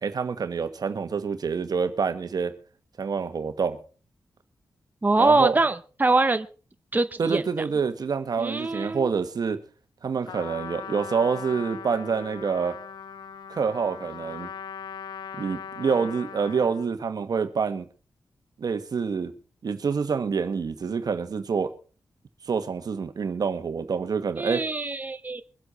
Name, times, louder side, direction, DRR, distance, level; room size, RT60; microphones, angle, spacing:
voice 1, 0.0-2.5 3.0-3.8 5.2-5.6 7.2-9.6 10.0-12.8 13.5-14.5 15.4-17.9 18.6-19.3 19.6-21.7 22.4-24.7, right 5 dB, 65° right, 1.5 m, -27 dB
voice 2, 5.0-6.5 6.9-7.4 8.4-9.1 24.4-25.4, right 2 dB, 25° right, 0.9 m, -23 dB
Trumpet, 10.3-16.9, left 7 dB, 80° left, 0.6 m, -39 dB
24.0 x 8.0 x 4.3 m
cardioid pair, 50°, 7 cm